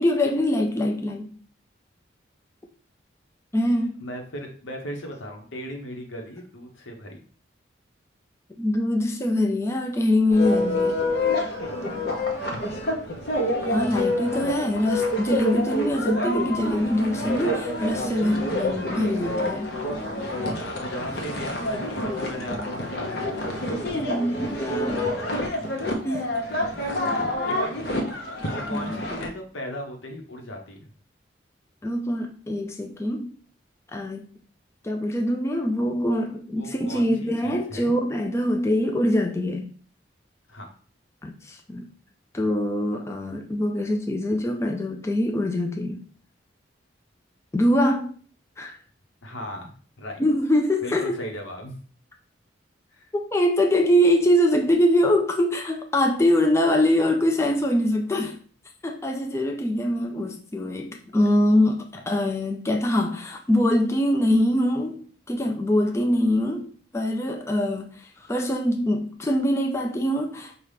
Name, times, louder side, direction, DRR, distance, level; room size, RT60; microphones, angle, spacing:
voice 1, 0.0-1.3 3.5-4.0 8.6-11.1 13.7-19.8 23.9-25.2 26.0-26.4 28.7-29.0 31.8-33.3 33.9-34.3 34.8-39.7 41.2-41.9 42.3-46.0 47.5-48.1 48.6-48.8 50.2-51.2 53.1-58.4 58.8-70.6, left 1 dB, 15° left, 0.3 m, -23 dB
voice 2, 4.0-7.2 17.1-17.3 19.7-19.9 20.4-24.0 24.5-24.7 26.5-27.2 27.5-28.1 28.5-30.9 36.6-38.0 40.5-40.7 49.2-50.2 50.8-51.8 52.9-53.1, equal, 90° left, 1.0 m, -37 dB
church viking music, 10.3-29.3, left 1 dB, 55° left, 0.8 m, -28 dB
5.5 x 2.4 x 3.3 m
head